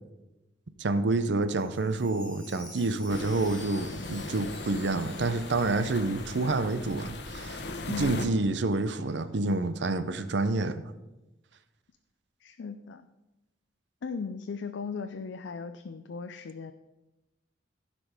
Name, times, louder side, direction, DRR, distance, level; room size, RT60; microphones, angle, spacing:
voice 1, 0.8-7.6 8.0-10.8, right 2 dB, 75° right, 12 dB, 0.6 m, -28 dB
Chime, 1.5-7.4 7.8-7.9 8.4-8.5, left 1 dB, 5° left, 1.8 m, -51 dB
sound 1, 3.1-8.3, left 2 dB, 70° left, 1.0 m, -39 dB
voice 2, 7.8-8.4 12.4-13.1 14.0-16.7, left 5 dB, 90° left, 8 dB, 0.5 m, -37 dB
15.0 x 5.1 x 4.9 m, 1.0 s
head